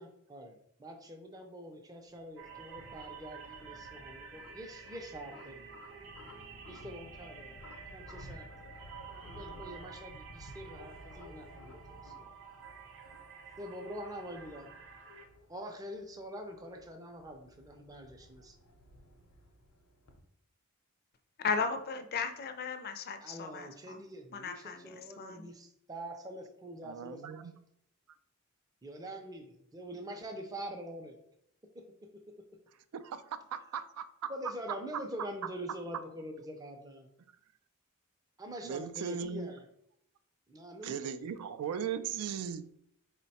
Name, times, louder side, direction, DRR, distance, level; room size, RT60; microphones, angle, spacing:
voice 1, 0.0-5.7 6.7-7.6 7.9-8.5 9.2-12.3 13.6-14.7 15.5-18.5 23.2-27.4 28.8-31.2 31.7-31.8 34.3-37.1 38.4-39.6 40.5-41.3, equal, 15° right, 0.4 m, -45 dB
sound 1, 2.1-20.2, left 1 dB, 85° left, 0.7 m, -54 dB
sound 2, 2.4-15.3, right 6 dB, 60° right, 0.7 m, -51 dB
voice 2, 21.4-24.0 24.3-25.5, left 5 dB, 45° left, 0.4 m, -36 dB
voice 3, 26.8-27.6 32.9-33.2 33.5-34.3 34.7-35.0 38.6-39.5 40.8-42.7, right 7 dB, 90° right, 0.3 m, -38 dB
4.7 x 2.1 x 4.1 m
head